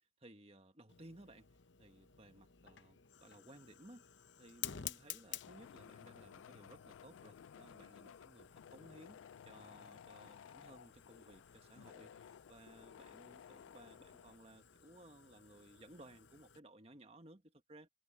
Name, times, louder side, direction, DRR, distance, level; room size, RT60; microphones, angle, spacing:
voice 1, 0.0-4.1 4.4-17.9, right 1 dB, 30° right, 1.5 m, -59 dB
Fire, 0.9-16.6, left 11 dB, 65° left, 0.8 m, -54 dB
sound 1, 5.4-14.4, left 8 dB, 85° left, 0.3 m, -57 dB
head